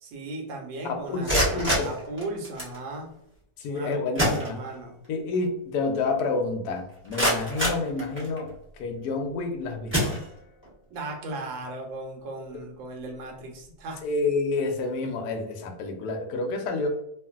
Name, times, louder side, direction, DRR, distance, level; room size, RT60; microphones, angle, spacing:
voice 1, 0.0-3.1 3.7-5.0 10.9-14.0, right 2 dB, 90° right, 1 dB, 1.4 m, -36 dB
voice 2, 1.1-1.9 3.6-4.6 5.1-8.5 8.8-10.1 14.0-16.9, left 3 dB, 70° left, 4 dB, 0.9 m, -29 dB
sound 1, 1.1-2.8 3.8-3.9 4.2-5.1 5.4-5.5 6.1-6.2 6.7-8.6 9.2-9.4 9.9-10.7, equal, 15° right, 0.5 m, -28 dB
2.9 x 2.5 x 2.3 m, 0.77 s
omnidirectional pair, 2.1 m